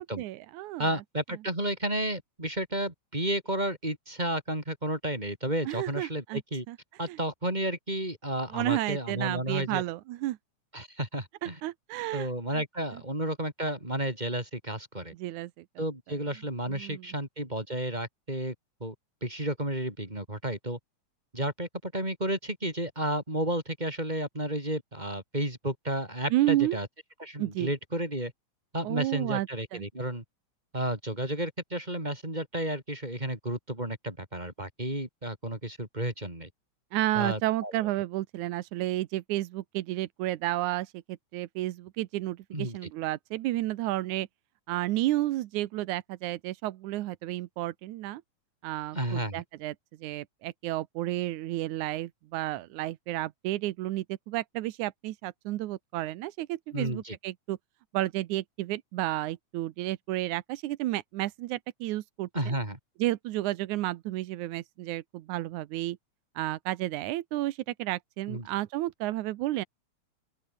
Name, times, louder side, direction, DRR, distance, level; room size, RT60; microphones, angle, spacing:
voice 1, 0.0-1.0 5.7-6.4 6.7-6.8 7.1-7.2 8.5-10.4 11.4-12.6 15.2-15.5 16.7-17.1 26.3-26.8 27.4-27.7 28.8-29.8 36.9-44.3 44.7-48.2 48.6-49.7 50.0-57.6 57.9-62.5 63.0-66.0 66.4-69.6, right 16 dB, 90° right, 2.3 m, -31 dB
voice 2, 0.8-6.6 7.0-9.8 10.7-11.6 12.1-15.1 15.8-18.5 18.8-18.9 19.2-20.8 21.3-26.9 27.2-28.3 28.7-30.2 30.7-36.5 37.1-37.7 42.5-42.9 48.9-49.4 56.7-57.2 62.3-62.8 68.3-68.5, right 1 dB, 15° right, 4.9 m, -32 dB
open air
omnidirectional pair, 3.3 m